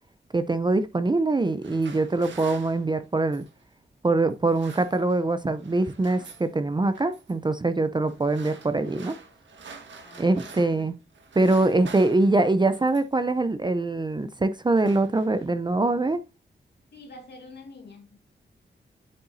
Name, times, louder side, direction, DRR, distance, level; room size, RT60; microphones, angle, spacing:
voice 1, 0.3-3.4 4.0-9.2 10.2-10.9 11.4-16.2, right 2 dB, 25° right, 0.6 m, -23 dB
sound 1, 1.4-3.6 4.3-5.3 5.6-6.5 6.9-7.3 8.0-10.9 11.1-13.2 14.0-14.2 14.5-15.6, right 5 dB, 85° right, 1.5 m, -47 dB
voice 2, 10.0-10.9 16.9-18.2, left 2 dB, 65° left, 1.9 m, -47 dB
7.9 x 7.0 x 2.7 m
cardioid pair, 85°, 19 cm